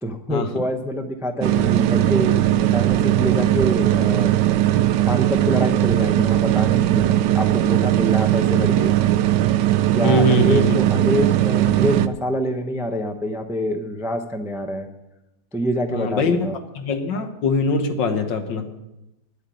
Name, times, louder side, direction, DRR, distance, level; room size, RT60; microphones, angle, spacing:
voice 1, 0.0-2.4 2.7-4.3 5.1-8.9 9.9-14.9 15.5-16.6, equal, 5° right, 6 dB, 0.4 m, -26 dB
sound 1, 1.4-12.1, right 13 dB, 75° right, 1.2 m, -19 dB
voice 2, 10.0-10.7 15.9-16.5 16.8-18.7, left 3 dB, 80° left, 6 dB, 1.9 m, -22 dB
10.0 x 8.1 x 9.0 m, 0.94 s
omnidirectional pair, 1.9 m